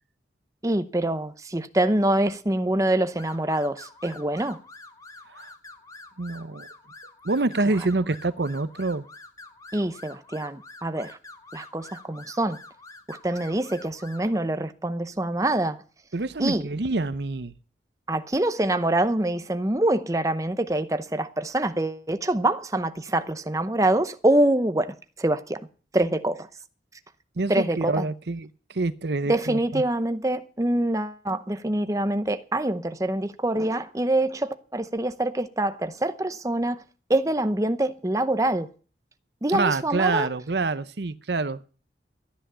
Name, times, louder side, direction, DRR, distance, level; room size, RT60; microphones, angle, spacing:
voice 1, 0.6-4.6 9.7-11.2 11.5-12.6 13.1-15.8 16.4-16.7 18.1-25.7 25.9-26.5 27.5-28.1 29.3-36.8 37.1-38.7 39.4-40.3, right 1 dB, 20° right, 0.7 m, -25 dB
sound 1, 3.2-14.4, left 2 dB, 20° left, 1.5 m, -47 dB
voice 2, 6.2-6.7 7.2-9.0 16.1-17.5 27.4-29.8 39.5-41.6, right 3 dB, 75° right, 0.8 m, -27 dB
13.5 x 10.0 x 6.8 m
head